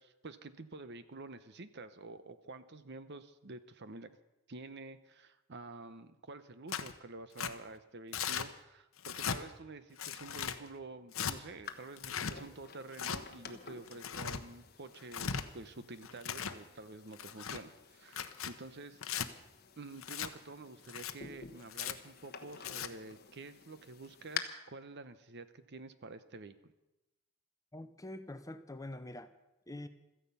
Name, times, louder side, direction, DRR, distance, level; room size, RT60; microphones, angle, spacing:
voice 1, 0.0-4.2 4.5-19.2 19.8-26.7, right 3 dB, 50° right, 12 dB, 0.9 m, -49 dB
Tearing, 6.7-6.9 7.4-7.5 8.1-8.5 9.0-9.4 10.0-10.6 11.1-11.4 12.0-12.3 12.9-13.2 13.9-14.4 15.0-15.4 16.0-16.6 17.1-17.6 18.1-18.5 19.0-19.3 20.0-20.3 20.9-21.1 21.7-21.9 22.5-22.9, left 7 dB, 65° left, 0.9 m, -38 dB
sound 1, 11.6-24.4, left 8 dB, 45° left, 1.2 m, -50 dB
voice 2, 27.7-29.3 29.7-29.9, left 1 dB, 15° left, 10 dB, 0.7 m, -45 dB
16.5 x 14.0 x 5.6 m, 0.96 s
head